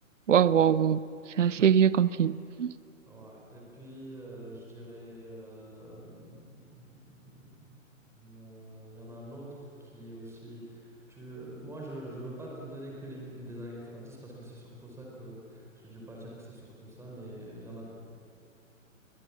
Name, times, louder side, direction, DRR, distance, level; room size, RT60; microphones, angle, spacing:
voice 1, 0.3-1.0 1.4-2.7, right 8 dB, 65° right, 18 dB, 0.8 m, -23 dB
voice 2, 3.0-6.4 6.9-7.7 8.2-17.9, right 1 dB, 5° right, -3 dB, 4.6 m, -45 dB
28.5 x 22.0 x 7.4 m, 2.5 s
figure-of-eight pair, 130°, 40 cm